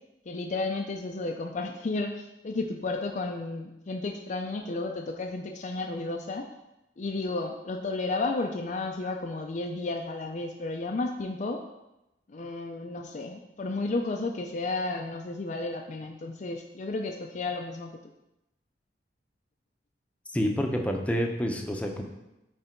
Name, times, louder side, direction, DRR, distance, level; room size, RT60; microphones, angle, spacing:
voice 1, 0.3-6.5 7.0-11.6 12.3-17.9, left 3 dB, 45° left, 2 dB, 0.5 m, -32 dB
voice 2, 20.3-22.0, equal, 10° left, 2 dB, 0.7 m, -28 dB
8.8 x 3.3 x 4.5 m, 0.92 s
head